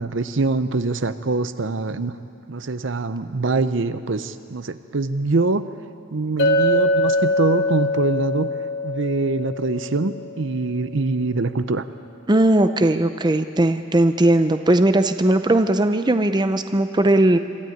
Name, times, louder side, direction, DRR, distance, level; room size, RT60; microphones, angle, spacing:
voice 1, 0.0-2.1 2.5-5.6 6.1-8.5 8.8-11.8, right 3 dB, 65° right, 12 dB, 0.7 m, -24 dB
Chink clink, 6.4-10.6, left 1 dB, 60° left, 2.0 m, -23 dB
voice 2, 12.3-17.4, right 1 dB, 20° right, 9 dB, 0.6 m, -18 dB
25.0 x 13.0 x 9.4 m, 2.5 s
head